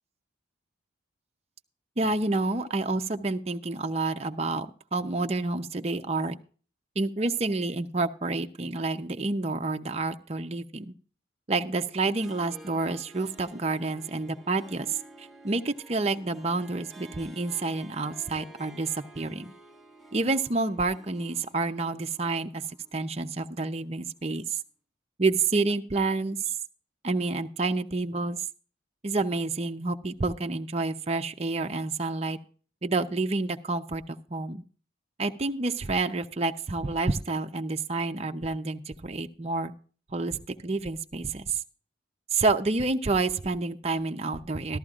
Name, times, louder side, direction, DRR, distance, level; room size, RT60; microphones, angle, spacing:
voice 1, 2.0-6.4 7.0-10.9 11.5-14.9 15.2-18.9 19.2-19.5 20.1-22.6 22.9-24.4 25.2-26.4 27.0-28.4 29.0-32.4 32.8-34.6 35.2-39.7 40.1-41.5 42.3-44.8, right 3 dB, 35° right, 6 dB, 0.6 m, -29 dB
Harp, 12.2-24.0, right 2 dB, ahead, 0.8 m, -51 dB
14.0 x 13.5 x 2.4 m, 0.40 s
head